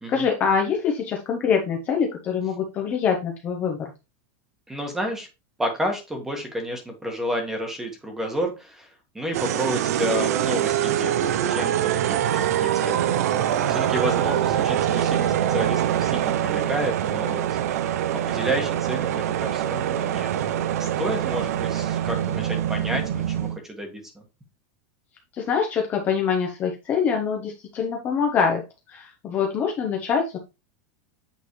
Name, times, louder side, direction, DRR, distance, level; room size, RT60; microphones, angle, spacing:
voice 1, 0.1-3.9 25.3-28.6 28.9-30.4, left 6 dB, 25° left, 1 dB, 0.9 m, -24 dB
voice 2, 4.7-5.3 5.6-11.2 11.5-18.0 18.2-20.5 20.8-24.0, equal, 5° right, 3 dB, 1.4 m, -31 dB
sound 1, 9.3-23.6, right 10 dB, 85° right, 0.6 m, -24 dB
8.2 x 4.0 x 3.1 m, 0.27 s
supercardioid pair, 175°, 8 cm